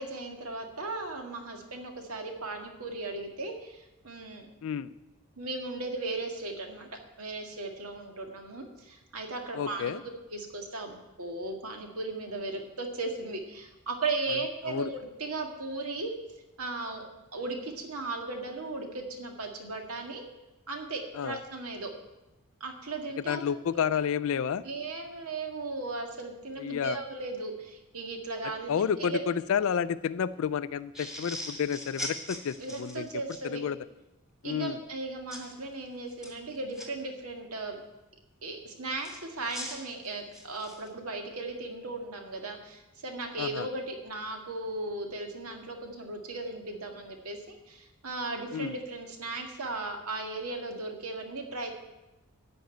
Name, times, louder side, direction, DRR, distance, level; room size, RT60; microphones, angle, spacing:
voice 1, 0.0-4.5 5.4-6.9 7.2-10.0 10.3-16.1 16.6-17.0 17.3-20.2 20.7-21.9 22.6-23.4 24.6-29.2 32.6-33.6 34.4-37.8 38.4-51.7, right 3 dB, 75° right, 3 dB, 1.9 m, -37 dB
voice 2, 4.6-4.9 9.5-10.0 14.7-14.9 21.1-21.4 23.3-24.6 26.6-27.0 28.7-33.1 33.4-33.8 34.4-34.8 43.4-43.7 48.5-48.7, left 7 dB, 65° left, 14 dB, 0.4 m, -30 dB
sound 1, 30.9-33.4 35.3-35.5 36.1-36.9 39.0-40.9, equal, ahead, 1.9 m, -40 dB
13.5 x 5.3 x 9.1 m, 1.0 s
head